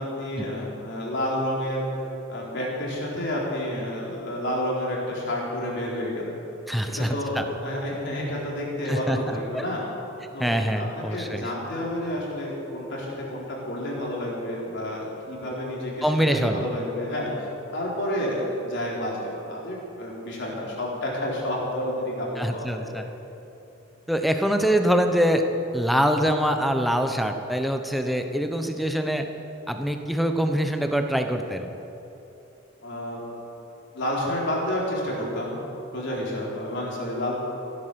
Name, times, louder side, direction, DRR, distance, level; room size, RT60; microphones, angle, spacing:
voice 1, 0.0-1.9 2.3-6.4 6.9-9.8 10.3-17.3 17.7-23.1 32.8-33.2 33.9-35.6 35.9-37.4, left 1 dB, 60° left, -4 dB, 4.1 m, -30 dB
voice 2, 6.7-7.4 8.9-9.6 10.4-11.4 16.0-16.6 22.4-23.1 24.1-25.5 25.7-29.3 29.7-31.7, equal, ahead, 5 dB, 0.9 m, -24 dB
16.0 x 11.5 x 6.9 m, 3.0 s
head